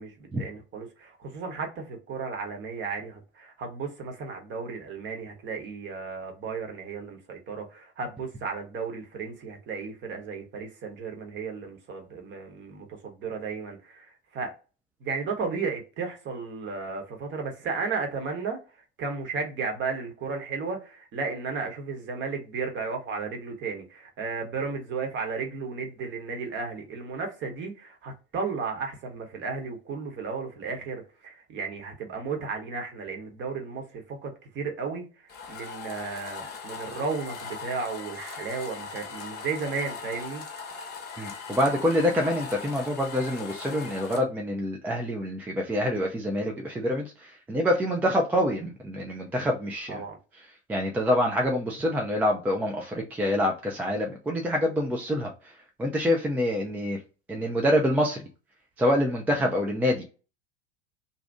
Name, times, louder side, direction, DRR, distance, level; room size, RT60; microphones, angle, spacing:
voice 1, 0.0-14.5 15.0-18.6 19.0-35.1 35.5-40.4 49.9-50.2, right 4 dB, 35° right, 1.0 m, -34 dB
sound 1, 35.3-44.2, left 5 dB, 30° left, 0.8 m, -39 dB
voice 2, 41.2-50.0 50.7-55.5 55.8-57.0 57.3-58.3 58.8-60.0, left 1 dB, 5° right, 0.3 m, -26 dB
2.7 x 2.3 x 3.4 m
figure-of-eight pair, 75°, 34 cm